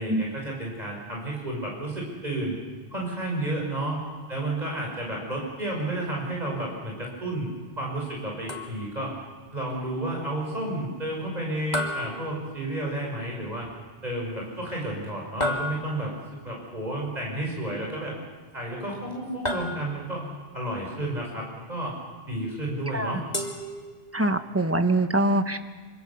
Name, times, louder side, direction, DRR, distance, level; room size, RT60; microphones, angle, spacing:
voice 1, 0.0-2.6 2.9-4.0 4.3-9.1 9.5-13.7 14.0-16.1 16.4-18.1 18.5-20.2 20.5-22.0 22.3-23.2, right 1 dB, 40° right, -2 dB, 5.5 m, -31 dB
sound 1, 8.5-9.1 11.7-13.0 15.4-16.3 19.4-20.3 23.3-24.4, left 1 dB, 40° left, 2.7 m, -33 dB
voice 2, 24.1-25.6, right 1 dB, 15° right, 8 dB, 1.3 m, -23 dB
25.5 x 25.0 x 7.1 m, 1.4 s
omnidirectional pair, 1.1 m